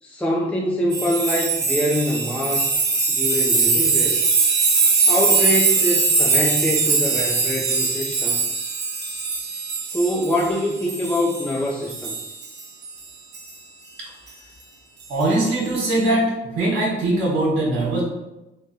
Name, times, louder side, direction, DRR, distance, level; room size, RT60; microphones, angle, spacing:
voice 1, 0.0-2.7 3.1-4.3 5.0-8.4 9.8-12.2, equal, 5° left, -4 dB, 0.5 m, -24 dB
sound 1, 0.9-11.6 11.9-12.9 13.3-13.5 15.2-15.4, right 4 dB, 60° right, 1.0 m, -21 dB
voice 2, 15.1-18.0, right 2 dB, 80° right, -4 dB, 1.2 m, -21 dB
3.7 x 2.2 x 4.2 m, 0.97 s
cardioid pair, 90°, 20 cm